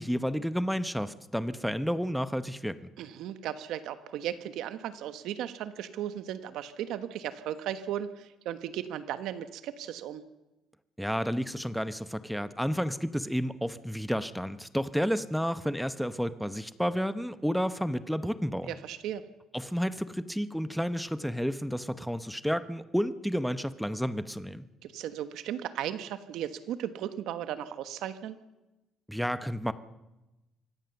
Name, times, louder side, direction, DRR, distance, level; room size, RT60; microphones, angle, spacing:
voice 1, 0.0-2.9 11.0-18.7 19.5-24.6 29.1-29.7, equal, ahead, 13 dB, 0.8 m, -31 dB
voice 2, 3.0-10.2 18.7-19.2 24.8-28.4, right 10 dB, 70° right, 11 dB, 1.3 m, -36 dB
24.5 x 17.5 x 7.0 m, 0.99 s
cardioid pair, 170°, 0 cm